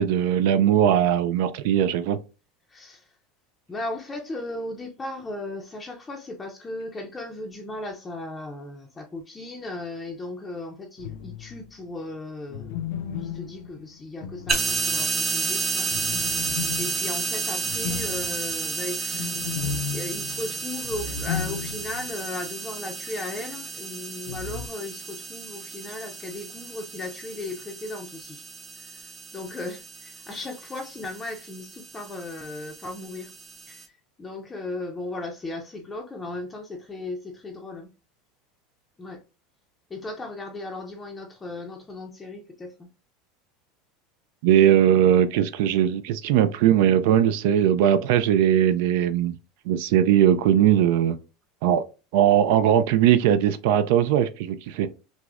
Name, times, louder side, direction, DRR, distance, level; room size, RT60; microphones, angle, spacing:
voice 1, 0.0-2.2 44.4-49.3 49.7-51.2 51.6-51.8 52.1-54.9, right 10 dB, 70° right, 0.3 m, -20 dB
voice 2, 2.7-3.2 3.7-19.4 19.9-28.4 28.8-33.3 33.7-37.9 39.0-39.2 39.9-42.9, left 2 dB, 15° left, 0.5 m, -36 dB
sound 1, 11.0-11.7 12.5-15.2 15.9-22.1 22.4-22.5 24.3-24.7, left 8 dB, 85° left, 0.4 m, -34 dB
sound 2, 14.5-33.8, right 4 dB, 20° right, 0.9 m, -32 dB
5.9 x 2.0 x 2.5 m
supercardioid pair, 155°, 0 cm